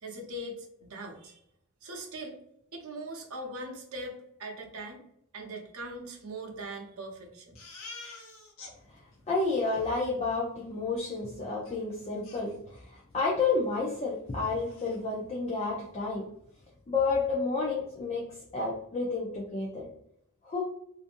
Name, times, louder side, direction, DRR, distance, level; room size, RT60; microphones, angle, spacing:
voice 1, 0.0-1.4 1.8-2.4 2.7-5.0 5.3-7.6, right 1 dB, 85° right, 2 dB, 0.7 m, -41 dB
Crying sobbing, 7.6-8.7 9.1-9.2 9.5-9.8 11.7-11.8 12.2-13.0 13.4-13.5 13.9-14.0 14.3-15.0, left 3 dB, 75° left, 0.9 m, -48 dB
voice 2, 9.3-16.3 16.9-18.2 18.5-19.9 20.4-20.6, left 3 dB, 30° left, -3 dB, 0.4 m, -30 dB
2.6 x 2.5 x 2.5 m, 0.73 s
head